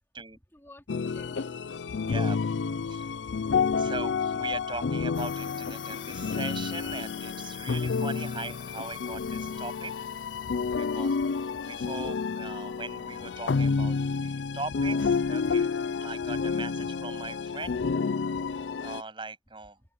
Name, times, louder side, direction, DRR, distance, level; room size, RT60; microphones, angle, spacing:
voice 1, 0.3-2.0, left 1 dB, 15° left, 3.7 m, -56 dB
sound 1, 0.9-19.0, left 5 dB, 85° left, 0.5 m, -30 dB
voice 2, 1.9-9.9 10.7-11.2 11.5-15.7 16.0-17.8 18.4-19.8, right 3 dB, 25° right, 7.7 m, -40 dB
sound 2, 5.1-13.3, left 8 dB, 45° left, 2.3 m, -48 dB
open air
head